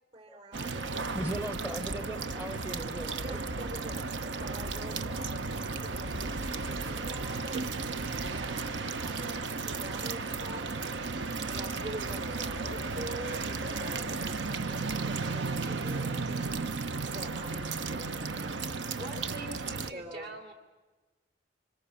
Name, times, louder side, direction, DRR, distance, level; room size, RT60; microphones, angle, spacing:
voice 1, 0.1-1.1 3.2-7.6 8.3-10.7 11.5-16.4 17.1-19.0 19.9-20.3, right 1 dB, 35° right, 5 dB, 5.2 m, -45 dB
sound 1, 0.5-19.9, right 4 dB, 75° right, 1.0 m, -34 dB
voice 2, 1.1-3.4 16.2-16.3, right 1 dB, 10° right, 7 dB, 0.8 m, -39 dB
voice 3, 19.0-20.5, right 2 dB, 60° right, 0 dB, 2.9 m, -43 dB
27.5 x 25.5 x 7.2 m, 1.3 s
head